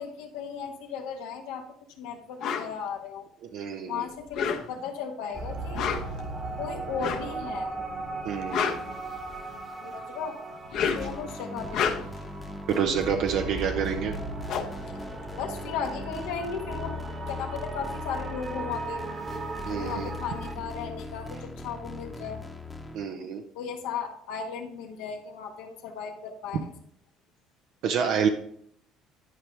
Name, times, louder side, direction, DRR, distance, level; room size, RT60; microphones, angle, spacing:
voice 1, 0.0-1.7 2.0-3.3 3.9-5.9 6.6-7.7 9.8-10.4 10.8-12.0 15.4-17.0 17.3-19.0 19.7-22.4 23.5-26.7, left 6 dB, 85° left, 3 dB, 1.3 m, -36 dB
sound 1, 2.4-2.7 4.2-4.9 5.6-6.2 7.0-7.3 8.3-9.5 10.5-11.2 11.6-12.3 13.8-13.9 14.2-15.8, left 7 dB, 65° left, 1.0 m, -31 dB
voice 2, 3.5-4.0 8.2-8.8 12.7-14.1 19.7-20.1 22.9-23.4 27.8-28.3, right 7 dB, 70° right, 4 dB, 0.7 m, -27 dB
sound 2, 5.3-20.5, right 3 dB, 30° right, 1.3 m, -38 dB
sound 3, 10.8-23.0, left 2 dB, 10° left, 1.0 m, -39 dB
11.0 x 4.9 x 3.3 m, 0.66 s
cardioid pair, 110°, 0 cm